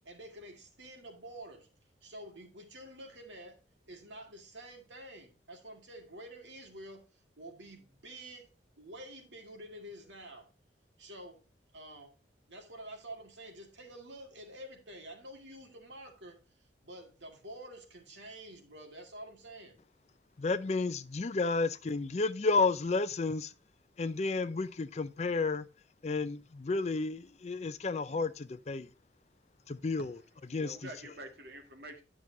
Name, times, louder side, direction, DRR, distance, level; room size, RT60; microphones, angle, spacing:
voice 1, 0.0-1.7 2.0-3.6 3.9-7.0 7.4-8.5 8.8-10.5 11.0-11.4 11.7-12.1 12.5-19.8, right 1 dB, 80° right, 2.1 m, -49 dB
voice 2, 20.4-23.5 24.0-25.7 26.0-28.9 29.7-30.1 30.5-30.8, left 3 dB, 35° left, 0.4 m, -31 dB
voice 3, 30.0-32.0, right 1 dB, 55° right, 1.9 m, -48 dB
10.5 x 6.1 x 2.7 m
head